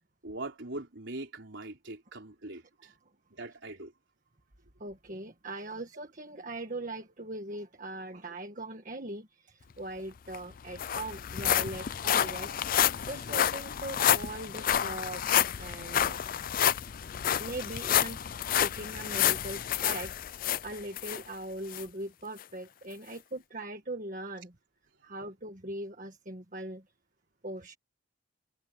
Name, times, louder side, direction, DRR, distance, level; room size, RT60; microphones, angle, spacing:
voice 1, 0.2-2.9 3.3-3.9, right 2 dB, 65° right, 3.9 m, -42 dB
voice 2, 4.8-16.2 17.4-20.1 20.6-24.5 25.0-26.8 27.4-27.8, right 1 dB, 40° right, 1.7 m, -40 dB
Walk - Pebbles, 10.0-10.1 10.3-21.2 21.7-21.8 22.4-22.5, left 10 dB, 45° left, 0.4 m, -29 dB
head